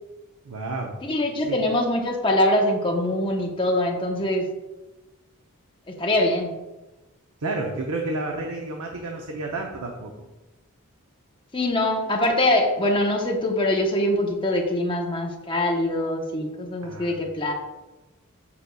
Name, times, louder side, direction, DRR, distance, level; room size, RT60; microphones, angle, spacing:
voice 1, 0.4-0.9 1.4-1.6 7.4-10.3 16.8-17.3, right 2 dB, 85° right, 1 dB, 0.7 m, -31 dB
voice 2, 1.0-4.5 5.9-6.5 11.5-17.5, left 1 dB, 25° left, 1 dB, 0.9 m, -23 dB
6.9 x 6.5 x 2.3 m, 1.1 s
head